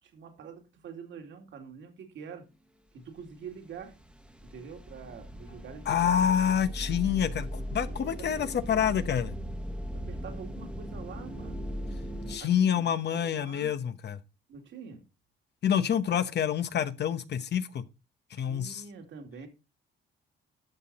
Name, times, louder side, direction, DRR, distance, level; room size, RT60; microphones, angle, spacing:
voice 1, 0.0-2.5 2.9-4.0 4.4-6.3 7.8-8.8 9.9-11.6 12.4-13.7 14.5-15.0 18.4-19.5, right 6 dB, 70° right, 2.4 m, -46 dB
sound 1, 3.3-3.5 3.8-12.4, equal, 5° right, 1.2 m, -38 dB
voice 2, 5.9-9.3 12.3-14.2 15.6-17.8 18.3-18.8, left 8 dB, 60° left, 1.0 m, -27 dB
12.0 x 5.9 x 4.2 m
cardioid pair, 90°, 20 cm